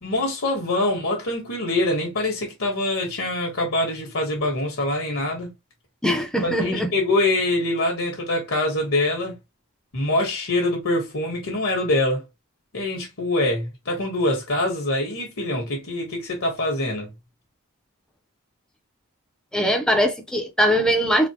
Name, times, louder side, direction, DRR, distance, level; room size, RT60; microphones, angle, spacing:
voice 1, 0.0-5.5 6.4-9.4 9.9-12.2 12.7-17.1, left 1 dB, 70° left, 1.5 m, -24 dB
voice 2, 6.0-6.9 19.5-21.3, equal, 5° left, 0.7 m, -21 dB
4.1 x 2.2 x 2.9 m
head